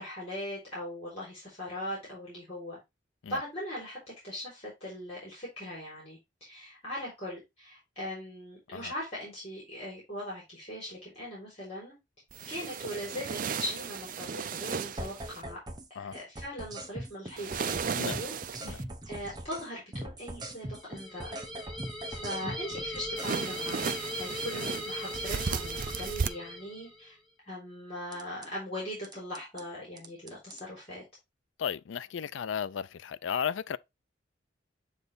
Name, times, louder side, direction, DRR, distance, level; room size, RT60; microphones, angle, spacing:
voice 1, 0.0-2.8 3.2-11.9 12.5-15.6 16.0-18.3 18.6-21.4 22.1-27.2 27.5-31.0, equal, 35° left, 3.7 m, -40 dB
sound 1, 12.3-15.4 17.4-18.8 23.2-26.3, right 6 dB, 45° right, 0.4 m, -35 dB
sound 2, 15.0-19.7 19.9-23.3 28.1-28.5 29.0-29.6 30.0-30.6, right 1 dB, 20° right, 0.8 m, -41 dB
sound 3, 20.7-27.1, equal, 5° left, 2.3 m, -39 dB
voice 2, 31.6-33.8, left 7 dB, 85° left, 0.4 m, -34 dB
8.1 x 3.3 x 4.0 m
head